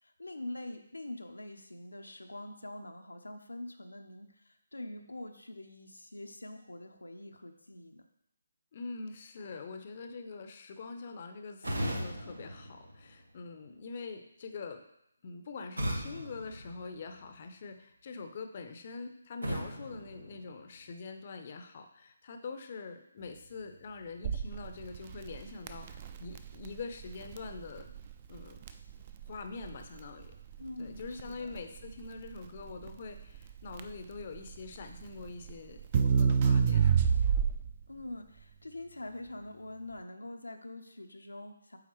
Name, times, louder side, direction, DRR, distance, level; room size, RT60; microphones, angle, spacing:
voice 1, 0.0-8.1 30.6-31.6 37.9-41.8, left 1 dB, 85° left, 5 dB, 0.6 m, -44 dB
voice 2, 8.7-14.8 15.2-27.9 28.3-28.6 29.3-30.3 30.8-37.0, left 4 dB, 40° left, 6 dB, 0.5 m, -44 dB
sound 1, 11.6-13.6 15.8-17.5 19.4-21.0, equal, 80° right, 1.0 m, -38 dB
Crackle, 24.2-37.8, right 7 dB, 35° right, 0.4 m, -30 dB
8.6 x 3.5 x 3.1 m, 0.78 s
figure-of-eight pair, 145°, 0 cm